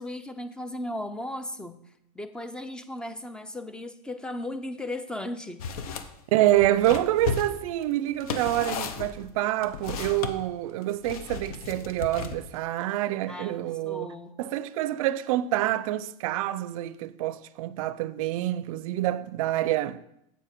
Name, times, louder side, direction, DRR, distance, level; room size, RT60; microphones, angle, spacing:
voice 1, 0.0-1.8 2.1-5.7 13.3-14.4, left 1 dB, 5° left, 0.4 m, -36 dB
sound 1, 5.6-6.1 6.5-10.3 11.0-12.6, left 6 dB, 80° left, 0.9 m, -34 dB
voice 2, 6.3-14.1 14.4-20.0, right 14 dB, 70° right, 0.4 m, -27 dB
8.1 x 6.9 x 4.5 m
supercardioid pair, 145°, 18 cm